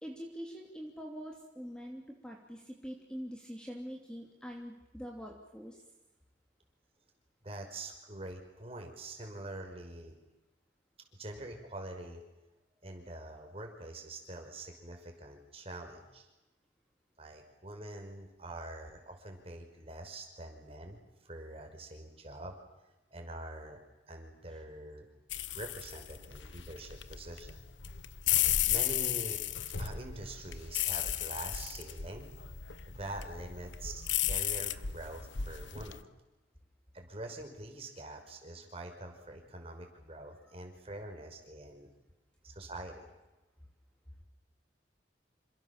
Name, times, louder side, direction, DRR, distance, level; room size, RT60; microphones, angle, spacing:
voice 1, 0.0-5.8, equal, 5° left, 1 dB, 2.9 m, -44 dB
voice 2, 7.4-10.1 11.1-12.2 12.8-16.3 17.2-22.5 23.1-23.8 24.1-25.1 25.5-27.6 28.6-29.4 29.8-32.3 32.9-34.0 34.3-36.1 36.9-41.9 42.4-43.1, right 1 dB, 30° right, 3 dB, 5.7 m, -45 dB
sound 1, 25.3-36.0, left 11 dB, 85° left, 1.2 m, -34 dB
28.0 x 26.0 x 7.4 m, 1.0 s
head